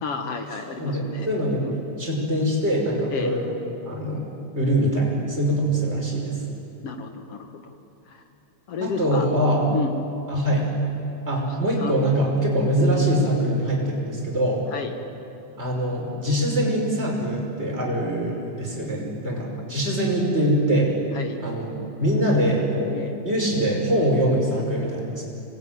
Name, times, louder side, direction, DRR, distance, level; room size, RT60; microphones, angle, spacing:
voice 1, 0.0-1.3 1.6-1.7 3.1-3.3 6.8-7.7 8.1-8.2 8.7-9.3 9.7-10.0 11.5-12.0 14.7-14.9 21.1-21.4 22.9-23.2, left 5 dB, 60° left, 5 dB, 1.6 m, -32 dB
voice 2, 0.8-3.5 3.8-4.2 4.5-6.4 8.8-9.6 10.3-10.7 11.3-14.6 15.6-21.0 21.4-23.0 23.2-25.2, right 1 dB, 15° right, -2 dB, 5.6 m, -23 dB
26.0 x 20.5 x 9.6 m, 2.7 s
omnidirectional pair, 4.3 m